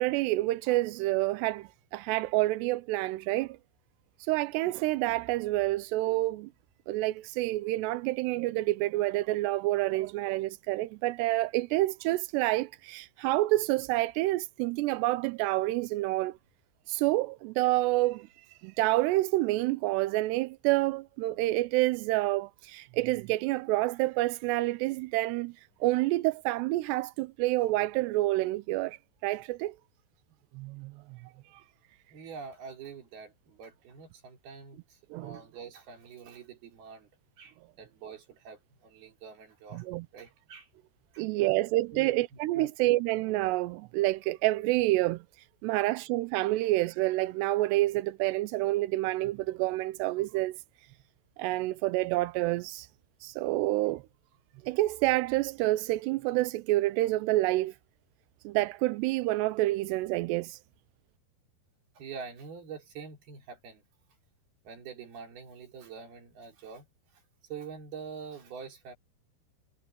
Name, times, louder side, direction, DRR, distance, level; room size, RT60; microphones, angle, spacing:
voice 1, 0.0-3.6 4.2-6.5 6.9-16.4 16.9-18.3 18.6-29.8 30.6-30.9 31.5-31.6 35.1-35.4 39.7-40.1 41.2-45.2 45.6-50.6 51.4-52.9 53.2-54.0 54.7-57.8 58.4-60.6, right 18 dB, 80° right, 2.6 m, -28 dB
voice 2, 32.1-37.1 37.4-39.9 40.1-40.7 41.1-41.5 41.9-42.1 42.5-42.7 62.0-63.9 64.7-66.9 67.1-67.2 67.5-68.9, right 6 dB, 60° right, 5.7 m, -45 dB
omnidirectional pair, 5.2 m